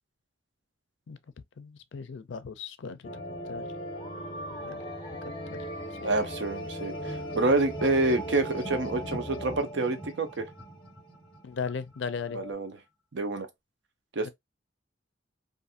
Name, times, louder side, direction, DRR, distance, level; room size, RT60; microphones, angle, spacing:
voice 1, 1.6-3.2 3.5-3.7 4.6-4.8 5.5-5.6 6.0-6.1 11.4-12.4 14.2-14.3, left 5 dB, 70° left, 0.4 m, -37 dB
sound 1, 3.0-10.5 10.8-10.9 12.1-12.5, equal, 25° left, 0.7 m, -38 dB
voice 2, 6.0-10.5 12.3-12.8 13.1-13.5 14.2-14.3, right 2 dB, 65° right, 0.6 m, -28 dB
sound 2, 6.9-12.2, right 2 dB, 5° right, 0.5 m, -43 dB
2.5 x 2.5 x 2.6 m
head